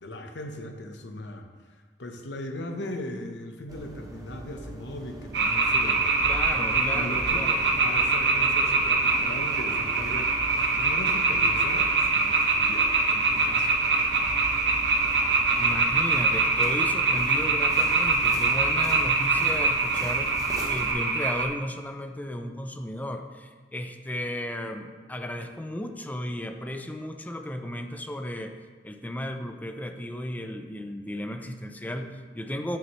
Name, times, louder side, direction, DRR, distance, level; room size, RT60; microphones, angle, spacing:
voice 1, 0.0-6.0 6.6-10.4 10.7-14.3, left 1 dB, 80° left, 5 dB, 0.8 m, -38 dB
sound 1, 3.7-20.9, right 1 dB, 20° right, 0.8 m, -41 dB
sound 2, 5.3-21.4, right 3 dB, 70° right, 0.8 m, -24 dB
voice 2, 6.2-7.6 15.6-20.3 20.7-28.6 28.8-32.8, left 1 dB, 10° left, 6 dB, 0.4 m, -34 dB
8.5 x 6.4 x 3.0 m, 1.4 s
head